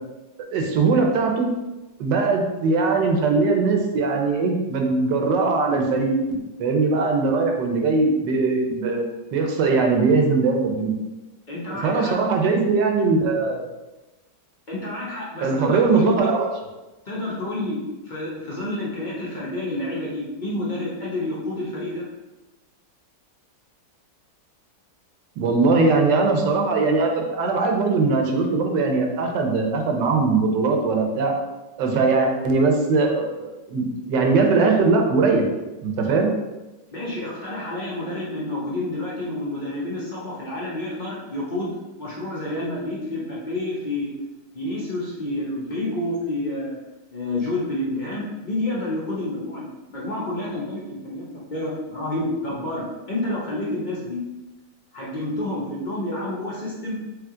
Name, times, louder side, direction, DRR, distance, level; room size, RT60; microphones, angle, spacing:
voice 1, 0.5-1.5 2.0-9.0 9.3-10.9 11.7-13.7 15.4-16.5 25.4-31.3 31.8-35.4 35.8-36.3, right 3 dB, 75° right, 2 dB, 1.3 m, -20 dB
voice 2, 11.5-12.1 14.7-16.1 17.1-22.0 36.9-44.1 44.5-46.8 47.1-51.3 51.5-54.2 54.9-57.0, left 1 dB, 55° left, -6 dB, 0.5 m, -29 dB
3.5 x 3.2 x 3.6 m, 1.1 s
omnidirectional pair, 1.9 m